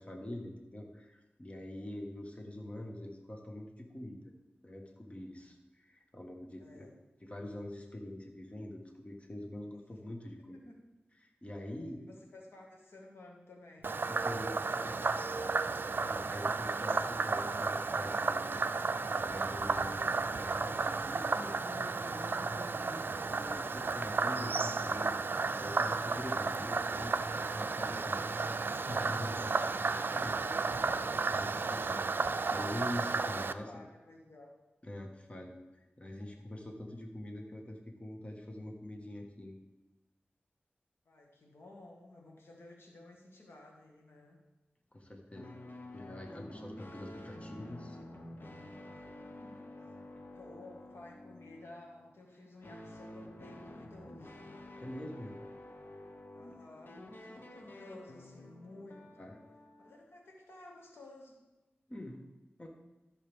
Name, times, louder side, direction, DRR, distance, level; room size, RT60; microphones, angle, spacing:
voice 1, 0.0-4.2 4.6-6.9 7.2-10.6 11.2-12.0 14.1-14.9 16.0-18.6 19.1-25.1 25.6-27.2 27.5-28.2 28.9-29.5 30.1-30.3 31.1-32.0 32.3-33.7 34.8-39.6 44.9-45.6 45.9-48.0 54.8-55.4 59.2-59.4 61.9-62.2 62.6-62.7, left 1 dB, 30° left, 2 dB, 1.5 m, -44 dB
voice 2, 6.6-6.9 9.7-10.0 10.7-10.8 12.0-15.7 27.9-28.4 29.9-31.9 33.2-34.6 41.1-44.4 49.0-49.9 50.3-54.5 56.3-59.3 59.8-61.4, left 2 dB, 80° left, 0 dB, 1.7 m, -54 dB
Frog, 13.8-33.5, right 4 dB, 60° right, 0.4 m, -33 dB
sound 1, 45.3-60.1, left 1 dB, 55° left, 1.2 m, -50 dB
13.5 x 6.6 x 3.5 m, 1.1 s
cardioid pair, 50°, 4 cm